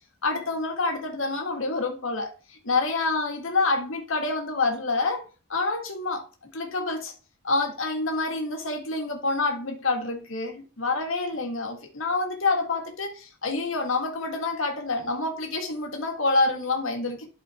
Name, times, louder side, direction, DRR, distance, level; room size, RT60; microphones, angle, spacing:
voice 1, 0.2-5.2 5.5-7.1 7.4-17.3, left 3 dB, 75° left, 1.7 m, -27 dB
12.0 x 4.5 x 3.5 m
head